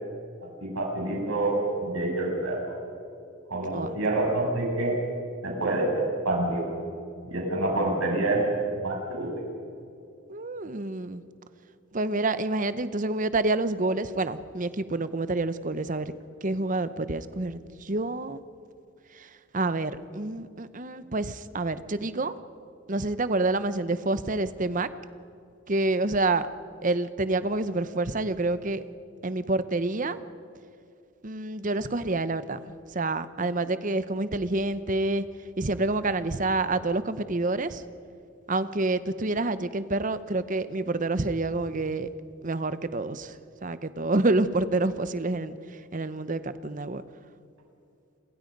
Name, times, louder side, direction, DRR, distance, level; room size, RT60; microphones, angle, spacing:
voice 1, 0.4-2.6 3.5-4.9 5.4-6.6 7.3-8.4 8.8-9.4, right 2 dB, 85° right, -1 dB, 7.5 m, -27 dB
voice 2, 10.3-11.2 11.9-16.1 16.4-18.4 19.1-22.4 22.9-24.9 25.7-26.5 26.8-28.8 29.2-30.2 31.2-35.3 35.6-37.8 38.5-42.1 42.4-43.4 43.6-45.6 45.9-47.0, right 2 dB, 40° right, 13 dB, 0.8 m, -28 dB
29.5 x 23.0 x 5.3 m, 2.6 s
head